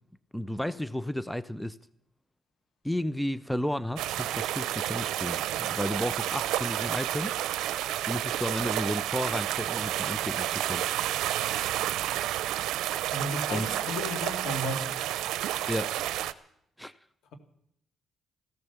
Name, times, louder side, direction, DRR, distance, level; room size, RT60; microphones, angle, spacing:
voice 1, 0.3-1.8 2.8-7.4 8.1-10.9 13.5-13.7 15.7-16.0 16.8-16.9, equal, 5° left, 17 dB, 0.5 m, -33 dB
sound 1, 4.0-16.3, right 13 dB, 90° right, 0.6 m, -30 dB
voice 2, 13.1-15.1, left 2 dB, 80° left, 7 dB, 2.2 m, -34 dB
15.0 x 14.0 x 6.9 m, 0.73 s
cardioid pair, 90°, 0 cm